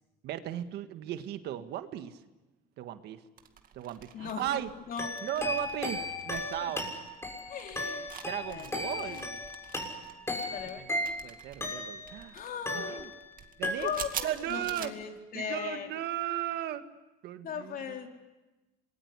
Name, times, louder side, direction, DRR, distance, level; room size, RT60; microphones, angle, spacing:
voice 1, 0.2-2.2 2.8-3.2 3.7-4.7 5.2-6.9 8.2-9.4 10.7-10.8 11.2-12.4 12.7-13.1 13.6-13.9 14.2-14.9 15.3-16.8 17.2-18.1, right 12 dB, 75° right, 9 dB, 1.7 m, -36 dB
sound 1, 3.4-14.9, right 9 dB, 55° right, 2.3 m, -47 dB
sound 2, 5.0-12.2 12.7-13.3 13.6-14.3, left 2 dB, 15° left, 6.4 m, -36 dB
voice 2, 7.5-8.1 8.5-8.7 9.0-9.2 10.5-10.8 12.3-13.0 13.8-15.9 17.4-18.1, left 7 dB, 60° left, 3 dB, 4.2 m, -38 dB
27.0 x 21.5 x 9.7 m, 1.1 s
cardioid pair, 110°, 17 cm